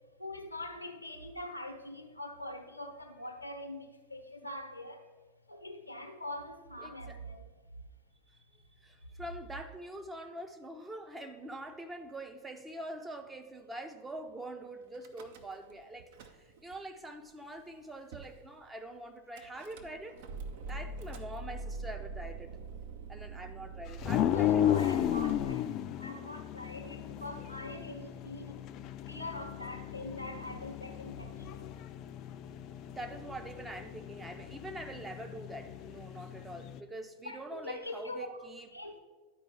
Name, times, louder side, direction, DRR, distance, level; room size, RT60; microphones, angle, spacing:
voice 1, 0.2-5.0 5.5-7.4 24.3-25.6 26.0-28.6 29.1-31.7 37.2-38.3 38.7-39.0, left 1 dB, 85° left, 6 dB, 0.8 m, -43 dB
voice 2, 6.8-7.2 8.8-16.1 16.4-20.3 20.7-22.5 23.1-24.6 32.9-38.7, right 1 dB, 10° right, 6 dB, 0.6 m, -44 dB
Car / Engine starting / Idling, 14.9-15.7 16.0-16.8 17.4-17.5 17.7-17.8 18.1-18.4 19.4-25.5, right 3 dB, 50° right, 0.6 m, -44 dB
sound 1, 24.0-36.8, left 11 dB, 35° left, 0.3 m, -35 dB
10.5 x 4.5 x 4.6 m, 1.4 s
figure-of-eight pair, 90°, 0 cm